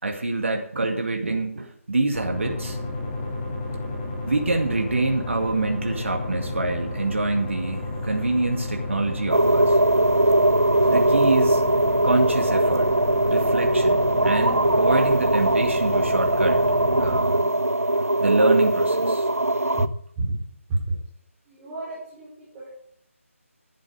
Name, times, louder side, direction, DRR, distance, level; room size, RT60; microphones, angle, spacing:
voice 1, 0.0-2.8 4.3-9.8 10.9-11.6 12.0-13.0 13.3-16.6 17.0-17.6 18.2-19.3, right 2 dB, 60° right, 3 dB, 2.2 m, -25 dB
sound 1, 2.1-17.2, left 2 dB, 25° left, 3.4 m, -31 dB
sound 2, 9.3-19.9, right 1 dB, 90° right, 0.8 m, -20 dB
voice 2, 21.5-22.3 22.5-22.7, right 2 dB, 15° right, -8 dB, 5.0 m, -29 dB
12.0 x 11.0 x 4.9 m, 0.70 s
figure-of-eight pair, 155°, 8 cm